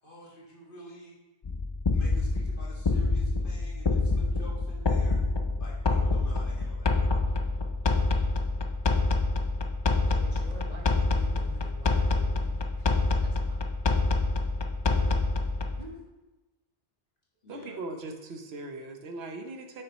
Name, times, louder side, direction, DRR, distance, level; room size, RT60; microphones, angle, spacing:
voice 1, 0.0-1.1 1.9-5.2 5.6-6.9 14.7-15.2 17.4-17.8, equal, 60° left, -5 dB, 2.1 m, -48 dB
sound 1, 1.4-15.8, left 3 dB, 40° left, 0.4 m, -27 dB
voice 2, 10.1-12.7 13.2-13.6 15.7-16.0, right 2 dB, 40° right, 1 dB, 1.1 m, -48 dB
voice 3, 17.5-19.8, right 2 dB, 80° right, 4 dB, 1.1 m, -39 dB
6.9 x 5.9 x 4.1 m, 1.1 s
omnidirectional pair, 1.0 m